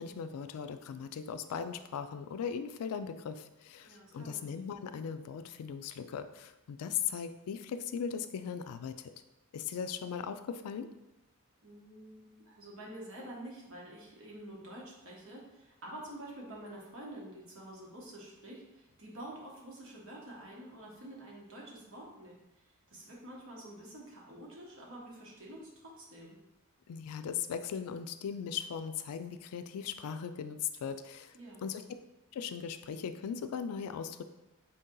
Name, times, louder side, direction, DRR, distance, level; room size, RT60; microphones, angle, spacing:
voice 1, 0.0-9.1 9.5-10.9 26.9-31.3 31.6-31.8 32.3-34.2, left 7 dB, 85° left, 10 dB, 0.3 m, -38 dB
voice 2, 3.8-4.5 11.6-26.4 31.3-31.7, right 1 dB, 65° right, -3 dB, 1.1 m, -48 dB
4.4 x 2.7 x 3.7 m, 0.99 s
head